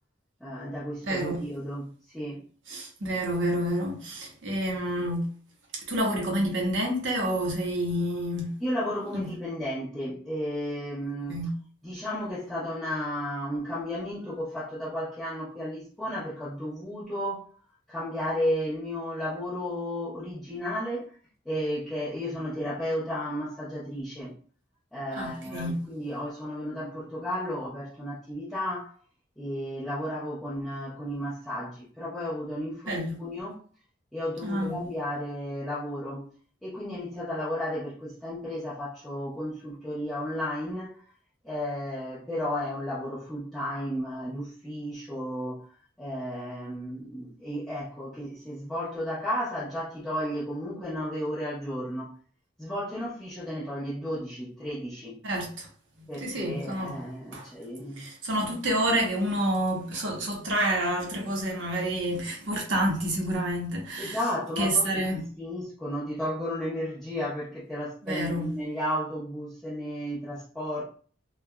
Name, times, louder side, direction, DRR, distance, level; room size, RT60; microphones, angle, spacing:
voice 1, 0.4-2.4 8.6-11.4 11.8-17.5 17.9-21.1 21.4-24.3 24.9-28.9 29.4-33.6 34.1-36.2 36.6-41.0 41.4-45.6 46.0-52.1 52.6-55.2 56.1-58.1 58.4-58.5 64.0-70.8, equal, ahead, 0.8 m, -33 dB
voice 2, 1.0-1.4 2.7-5.3 5.7-8.5 9.1-9.3 11.3-11.5 25.2-25.8 32.9-33.2 34.4-34.8 55.2-55.7 56.0-57.0 57.3-57.5 58.0-64.2 64.6-65.2 68.1-68.5, right 1 dB, 90° right, 0.9 m, -28 dB
3.2 x 2.3 x 2.2 m
head